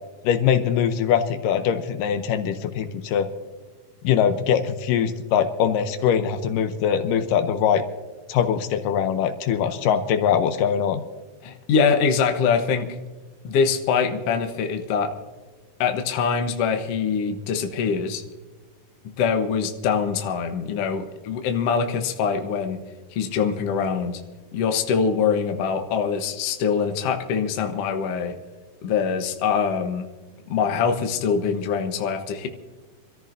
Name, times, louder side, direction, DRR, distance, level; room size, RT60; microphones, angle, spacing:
voice 1, 0.2-3.3 4.0-7.8 8.3-11.0, left 8 dB, 80° left, 9 dB, 2.3 m, -22 dB
voice 2, 11.4-12.9 13.4-15.1 15.8-18.2 19.2-22.8 23.1-24.2 24.5-28.4 28.8-30.1 30.5-32.5, left 6 dB, 60° left, 5 dB, 1.7 m, -23 dB
26.5 x 14.0 x 2.6 m, 1.3 s
omnidirectional pair, 3.9 m